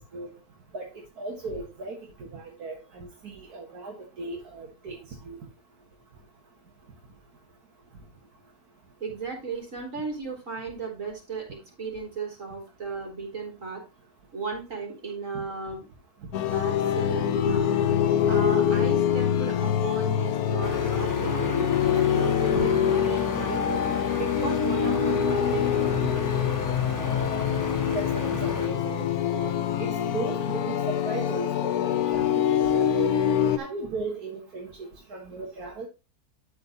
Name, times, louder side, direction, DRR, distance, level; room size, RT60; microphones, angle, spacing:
voice 1, 1.2-5.0 5.3-5.4 15.3-15.4 22.5-22.7 26.0-26.1 27.9-31.5 31.8-33.1 33.6-34.7 35.1-35.9, right 3 dB, 80° right, -1 dB, 2.1 m, -36 dB
voice 2, 9.0-13.8 14.3-15.9 16.4-17.7 18.3-23.8 24.2-26.2, right 4 dB, 55° right, 0 dB, 4.1 m, -35 dB
sound 1, 16.3-33.6, left 9 dB, 75° left, 1.2 m, -25 dB
sound 2, 20.6-28.7, left 2 dB, 15° left, 0.9 m, -34 dB
12.0 x 4.6 x 4.1 m, 0.29 s
omnidirectional pair, 1.6 m